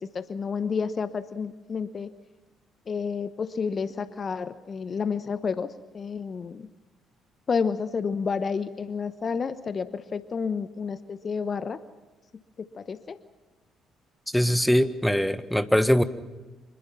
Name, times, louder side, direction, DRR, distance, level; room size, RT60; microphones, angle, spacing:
voice 1, 0.0-2.1 2.9-6.7 7.5-11.8 12.6-13.2, left 5 dB, 40° left, 14 dB, 1.0 m, -30 dB
voice 2, 14.3-16.0, equal, 5° left, 12 dB, 1.5 m, -22 dB
26.0 x 21.5 x 5.9 m, 1.2 s
figure-of-eight pair, 45°, 0 cm